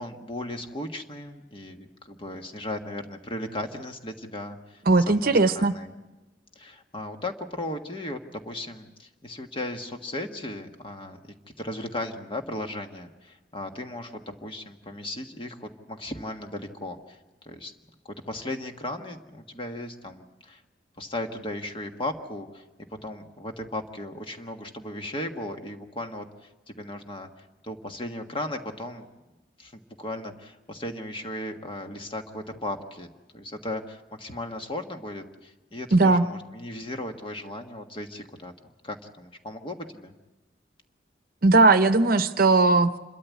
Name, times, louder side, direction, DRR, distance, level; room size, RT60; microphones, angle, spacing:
voice 1, 0.0-5.9 6.5-17.7 18.1-20.6 21.0-22.6 23.0-27.3 27.6-29.1 29.6-33.1 33.3-38.5 38.8-40.1, left 1 dB, 30° left, 5 dB, 1.5 m, -36 dB
voice 2, 4.9-5.7 35.9-36.2 41.4-43.0, right 3 dB, 55° right, 11 dB, 0.8 m, -18 dB
27.5 x 13.0 x 8.4 m, 1.1 s
head